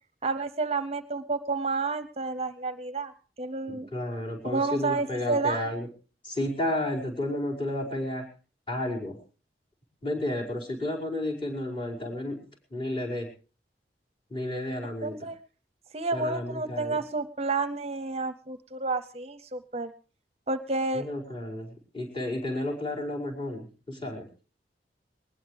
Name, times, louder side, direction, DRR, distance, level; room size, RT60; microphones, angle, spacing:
voice 1, 0.2-3.1 3.4-3.9 4.4-5.6 15.0-15.4 15.9-19.9 20.5-21.1, right 3 dB, 35° right, 12 dB, 0.7 m, -30 dB
voice 2, 3.7-5.9 6.2-8.2 8.7-9.2 10.0-12.4 12.7-13.3 14.3-15.2 16.1-17.0 20.9-24.3, left 1 dB, 30° left, -2 dB, 5.3 m, -32 dB
21.0 x 20.0 x 3.4 m, 0.37 s
head